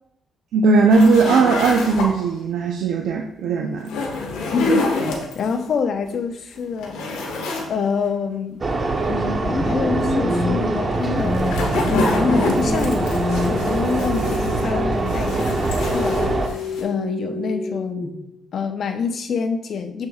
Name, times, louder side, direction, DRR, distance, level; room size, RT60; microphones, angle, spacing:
voice 1, 0.5-3.9, right 4 dB, 80° right, 1 dB, 0.6 m, -18 dB
sound 1, 0.9-2.4 3.8-5.5 6.1-6.2 6.6-7.7 8.0-8.1 11.0-14.8 15.1-16.8, left 2 dB, 90° left, 1.4 m, -27 dB
voice 2, 4.5-5.0 5.3-7.0 7.7-8.6 9.1-11.5 11.9-18.0 18.5-20.1, left 5 dB, 60° left, 6 dB, 0.8 m, -26 dB
sound 2, 8.6-16.5, right 3 dB, 35° right, 1.0 m, -23 dB
sound 3, 9.4-18.4, left 2 dB, 25° left, 0.7 m, -27 dB
7.0 x 6.5 x 2.4 m, 0.76 s
cardioid pair, 90°, 0 cm